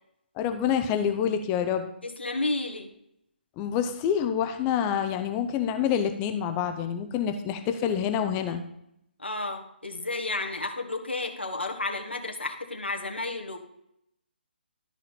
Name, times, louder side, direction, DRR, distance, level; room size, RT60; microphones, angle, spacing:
voice 1, 0.4-1.9 3.6-8.6, left 8 dB, 20° left, 7 dB, 0.7 m, -27 dB
voice 2, 2.0-2.9 9.2-13.6, left 2 dB, 85° left, 2 dB, 1.5 m, -32 dB
13.0 x 4.3 x 4.3 m, 0.77 s
figure-of-eight pair, 140°, 6 cm